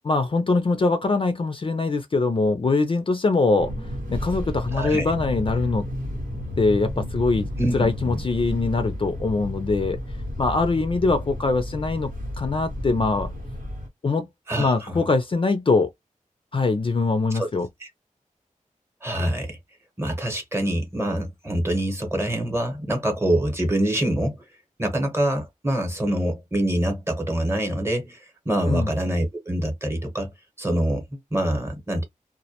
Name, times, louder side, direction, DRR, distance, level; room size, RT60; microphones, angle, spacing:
voice 1, 0.1-3.7 4.1-5.8 6.6-7.5 7.7-10.0 10.4-12.1 12.4-13.3 14.0-14.3 14.6-15.9 16.5-17.7 28.7-28.9, left 3 dB, 40° left, 0.4 m, -22 dB
Fixed-wing aircraft airplane, 3.6-13.9, equal, 85° right, 1.0 m, -32 dB
voice 2, 4.7-5.1 7.6-8.2 14.5-15.0 17.3-17.5 17.8-17.9 19.0-19.6 20.0-24.4 24.8-30.3 30.6-32.0, right 1 dB, 20° right, 0.9 m, -25 dB
2.1 x 2.1 x 2.8 m
wide cardioid pair, 95°, 14 cm